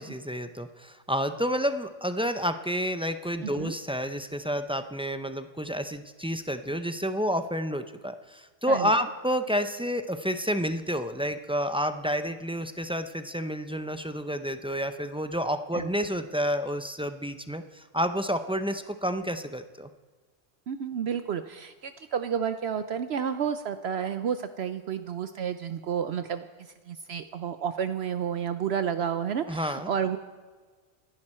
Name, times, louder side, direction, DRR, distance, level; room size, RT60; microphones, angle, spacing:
voice 1, 0.0-19.9 29.5-29.9, equal, 10° right, 9 dB, 0.3 m, -30 dB
voice 2, 3.4-3.7 8.7-8.9 15.7-15.9 20.7-30.2, right 8 dB, 65° right, 10 dB, 0.9 m, -31 dB
26.5 x 11.0 x 4.4 m, 1.4 s
omnidirectional pair, 1.2 m